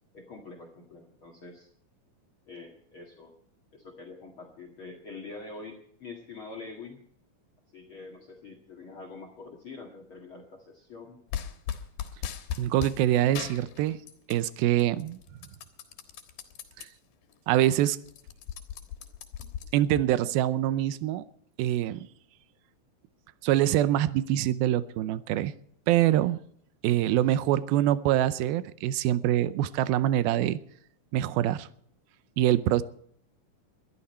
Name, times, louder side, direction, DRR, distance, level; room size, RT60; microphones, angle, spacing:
voice 1, 0.1-1.7 2.5-3.3 3.7-7.0 7.7-11.2, left 3 dB, 45° left, 4 dB, 2.3 m, -45 dB
sound 1, 11.3-13.0 13.3-14.5 14.8-16.9 17.3-17.4 17.6-20.0, left 9 dB, 80° left, 3.3 m, -37 dB
voice 2, 12.6-14.0 14.3-15.2 16.8-16.9 17.5-18.0 19.7-21.2 21.6-22.1 23.4-25.5 25.9-26.4 26.8-30.6 31.1-31.7 32.4-32.8, right 13 dB, 85° right, 15 dB, 2.6 m, -24 dB
21.5 x 12.5 x 4.4 m, 0.65 s
omnidirectional pair, 4.2 m